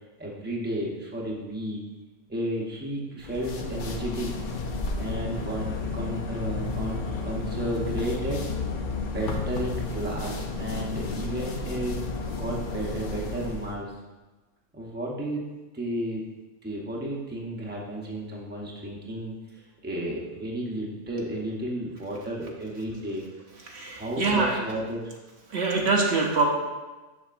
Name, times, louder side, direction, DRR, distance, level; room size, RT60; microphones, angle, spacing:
voice 1, 0.2-1.8 2.3-4.3 5.0-8.4 9.0-12.0 12.3-13.9 14.7-15.4 15.7-16.2 16.6-23.2 23.9-25.1, right 1 dB, 10° right, -3 dB, 0.8 m, -33 dB
sound 1, 3.2-13.7, left 3 dB, 50° left, 0.7 m, -32 dB
voice 2, 23.7-24.6 25.5-26.5, right 3 dB, 65° right, 0 dB, 1.1 m, -24 dB
7.1 x 6.5 x 2.5 m, 1.2 s
omnidirectional pair, 1.3 m